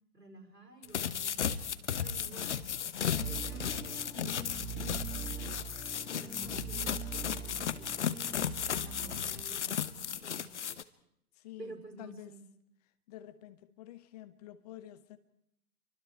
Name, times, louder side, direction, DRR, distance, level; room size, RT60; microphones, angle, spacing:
voice 1, 0.1-1.6 1.9-2.6 3.2-5.7 6.2-8.5 8.8-10.6 11.6-12.4, right 3 dB, 80° right, 5.6 m, -51 dB
sound 1, 0.8-10.8, left 8 dB, 45° left, 1.2 m, -35 dB
sound 2, 3.0-9.5, right 5 dB, 5° left, 5.3 m, -43 dB
voice 2, 11.3-12.3 13.1-15.2, left 13 dB, 25° left, 1.4 m, -49 dB
29.0 x 24.5 x 4.7 m
figure-of-eight pair, 130°, 48 cm